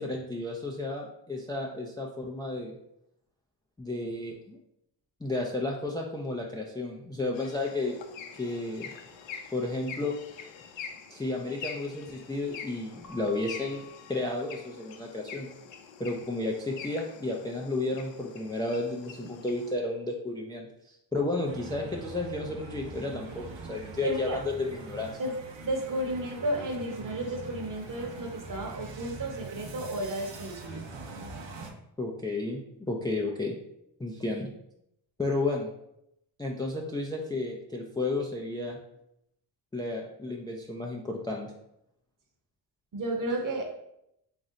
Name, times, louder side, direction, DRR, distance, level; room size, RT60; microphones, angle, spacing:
voice 1, 0.0-2.7 3.8-4.6 5.2-7.9 8.4-8.9 9.5-10.1 11.1-13.8 14.1-15.5 16.0-25.2 32.0-33.6 34.0-34.5 35.2-35.7 36.4-38.8 39.7-41.5, left 2 dB, 10° left, 0 dB, 0.3 m, -32 dB
sound 1, 7.3-19.7, left 6 dB, 80° left, 0.6 m, -45 dB
Keyboard (musical) / Bell, 13.0-15.5, left 6 dB, 45° left, 1.0 m, -53 dB
sound 2, 21.4-31.7, right 3 dB, 80° right, 0.7 m, -43 dB
voice 2, 24.0-24.4 25.2-25.3 25.6-30.8 42.9-43.7, right 1 dB, 45° right, 1 dB, 0.9 m, -33 dB
3.1 x 2.5 x 3.8 m, 0.79 s
cardioid pair, 85°, 44 cm